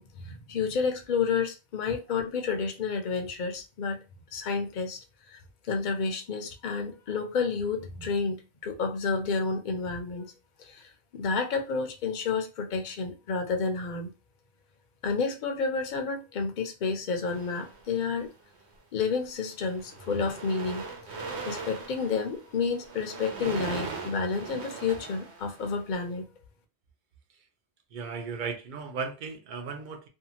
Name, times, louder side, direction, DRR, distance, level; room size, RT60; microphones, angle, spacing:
voice 1, 0.0-4.0 4.3-5.0 5.3-5.4 5.7-10.3 10.6-14.1 15.0-18.3 18.9-20.8 21.5-26.3, left 5 dB, 55° left, 0.6 m, -30 dB
sound 1, 17.3-18.3 19.0-19.2 19.5-26.0, right 4 dB, 85° right, 1.0 m, -40 dB
voice 2, 27.9-30.1, right 5 dB, 55° right, 0.7 m, -36 dB
2.7 x 2.3 x 2.8 m
omnidirectional pair, 1.1 m